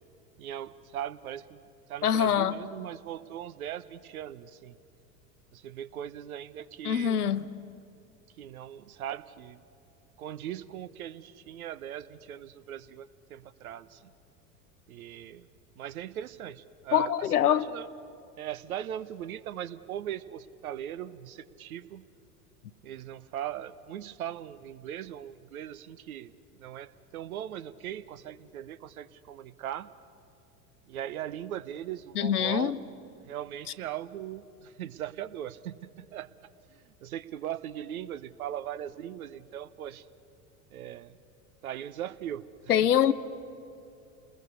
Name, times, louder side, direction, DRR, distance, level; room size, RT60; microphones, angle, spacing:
voice 1, 0.4-1.6 1.9-4.7 5.5-7.2 8.4-9.6 10.2-14.1 14.9-15.5 15.8-17.9 18.4-22.0 22.8-29.9 30.9-32.8 33.3-36.3 36.7-40.1 40.7-41.1 41.6-42.4, right 11 dB, 60° right, 14 dB, 1.1 m, -39 dB
voice 2, 2.0-2.6 6.8-7.5 16.9-17.7 32.2-32.8 42.7-43.1, left 9 dB, 70° left, 13 dB, 1.1 m, -24 dB
29.0 x 21.0 x 8.3 m, 2.7 s
figure-of-eight pair, 80°, 47 cm